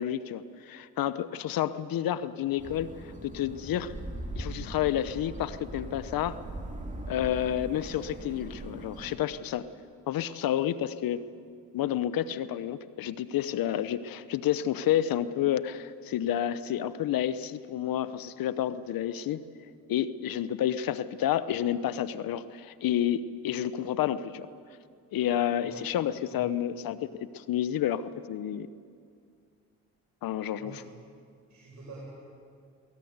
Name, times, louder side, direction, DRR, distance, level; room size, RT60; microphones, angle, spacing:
voice 1, 0.0-2.9 3.2-3.9 4.4-6.4 7.1-9.7 10.1-11.2 11.7-19.4 19.9-24.5 25.1-28.7 30.2-30.8, left 11 dB, 70° left, 14 dB, 0.9 m, -30 dB
sound 1, 2.6-9.2, right 1 dB, 20° right, 2.8 m, -40 dB
voice 2, 30.6-30.9 31.5-32.1, right 2 dB, 55° right, -5 dB, 7.5 m, -46 dB
23.0 x 18.5 x 8.0 m, 2.2 s
supercardioid pair, 70°, 36 cm